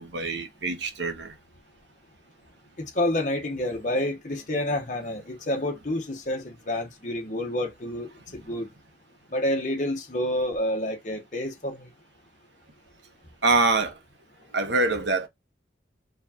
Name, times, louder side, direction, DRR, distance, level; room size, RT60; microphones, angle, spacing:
voice 1, 0.0-1.3 13.4-14.0 14.5-15.3, right 3 dB, 75° right, 1.2 m, -25 dB
voice 2, 2.8-8.7 9.3-11.9, left 1 dB, 40° left, 1.1 m, -29 dB
4.5 x 3.3 x 2.8 m
head